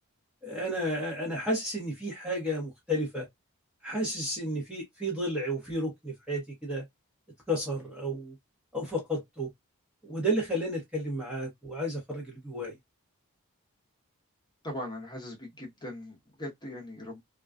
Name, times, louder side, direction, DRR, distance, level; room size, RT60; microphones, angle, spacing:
voice 1, 0.4-3.3 3.8-6.8 7.5-8.3 8.7-9.5 10.0-12.7, equal, 5° right, 0.9 m, -32 dB
voice 2, 14.6-17.2, left 1 dB, 20° left, 1.0 m, -40 dB
2.4 x 2.3 x 2.2 m
head